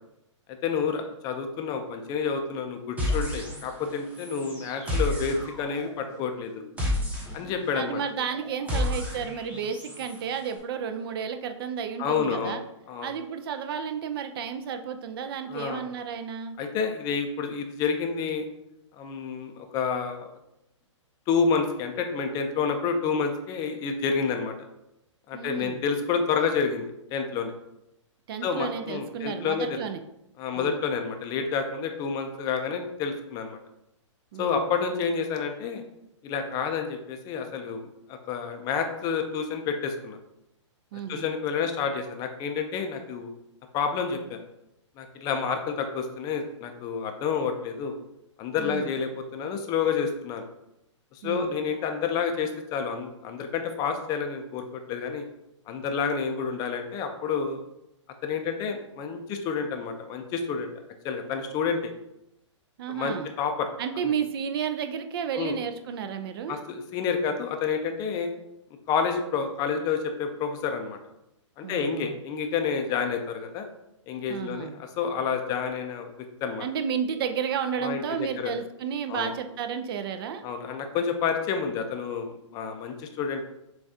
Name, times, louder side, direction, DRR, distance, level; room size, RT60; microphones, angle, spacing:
voice 1, 0.6-6.5 7.3-8.0 8.7-8.8 12.0-12.6 12.9-13.1 15.5-15.8 16.6-18.5 19.0-20.3 21.3-24.5 25.3-27.5 28.4-29.8 30.4-33.6 34.4-35.8 36.2-40.2 41.1-43.3 43.7-44.4 45.0-48.0 48.4-50.4 51.1-55.2 55.7-57.6 58.2-60.7 61.0-61.8 62.9-63.7 64.0-64.1 65.3-65.6 66.5-68.3 68.9-71.0 71.6-73.7 74.1-76.1 76.4-76.7 77.8-78.5 79.1-79.3 80.4-83.4, left 6 dB, 25° left, 5 dB, 0.4 m, -29 dB
sound 1, 3.0-10.2, left 1 dB, 10° right, 0.8 m, -31 dB
voice 2, 7.7-12.6 13.0-16.5 25.3-25.8 28.3-30.0 30.6-30.8 34.3-34.7 40.9-41.3 48.6-48.9 51.2-51.5 62.8-63.3 63.8-66.6 71.6-72.2 74.3-74.8 76.6-80.4, right 7 dB, 50° right, 8 dB, 0.4 m, -32 dB
6.8 x 2.3 x 2.7 m, 0.85 s
hypercardioid pair, 130°, 16 cm